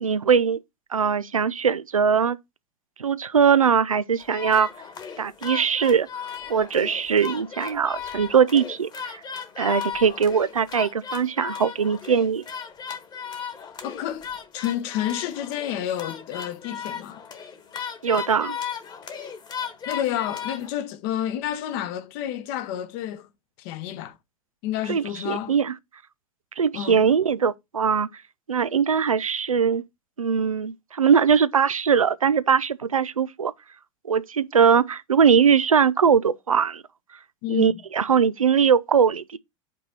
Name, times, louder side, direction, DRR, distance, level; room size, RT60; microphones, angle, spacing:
voice 1, 0.0-0.6 0.9-2.4 3.0-4.7 5.2-6.1 6.5-9.1 9.6-12.4 18.0-18.6 24.9-25.7 26.6-28.1 28.5-29.8 30.2-33.5 34.0-36.8 37.5-39.4, right 7 dB, 80° right, 0.5 m, -21 dB
sound 1, 4.2-20.7, left 7 dB, 25° left, 1.3 m, -36 dB
voice 2, 13.8-14.3 14.5-17.2 19.9-23.3 23.6-24.2 24.6-25.5 26.7-27.1 37.4-37.8, left 11 dB, 45° left, 0.9 m, -30 dB
5.4 x 4.1 x 5.1 m
figure-of-eight pair, 80°, 17 cm